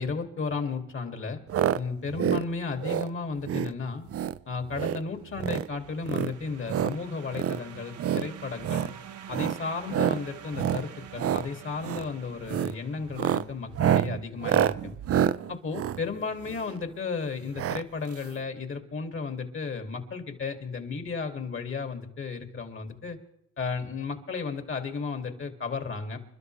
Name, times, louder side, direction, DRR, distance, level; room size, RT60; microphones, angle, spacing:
voice 1, 0.0-1.4 1.7-4.1 4.5-8.9 9.3-14.9 15.5-23.2 23.6-26.2, left 4 dB, 45° left, 5 dB, 2.5 m, -34 dB
sound 1, 1.5-1.8 2.1-2.4 2.8-3.1 3.4-3.7 4.1-4.4 4.7-5.0 5.3-5.7 6.0-6.9 7.3-7.6 8.0-8.3 8.6-8.9 9.3-9.6 9.9-10.2 10.5-10.8 11.1-11.4 11.8-12.1 12.5-12.7 13.1-16.8 17.6-17.8 18.1-18.2 18.4-18.5, right 10 dB, 50° right, 0.6 m, -27 dB
sound 2, 5.2-13.8, right 9 dB, 90° right, 1.7 m, -47 dB
29.0 x 12.5 x 3.3 m, 0.77 s
cardioid pair, 90°, 30 cm